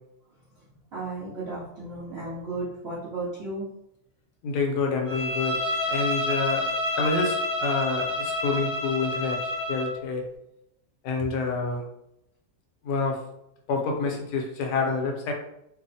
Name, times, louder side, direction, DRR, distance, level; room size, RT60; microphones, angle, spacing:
voice 1, 0.9-3.7, right 2 dB, 70° right, -7 dB, 0.6 m, -34 dB
voice 2, 4.4-6.6 7.0-10.2 11.0-11.8 12.8-13.2 13.7-15.3, left 4 dB, 75° left, 1 dB, 1.1 m, -28 dB
Bowed string instrument, 5.1-10.0, left 1 dB, 55° left, 0.8 m, -28 dB
2.9 x 2.0 x 2.6 m, 0.81 s
omnidirectional pair, 1.8 m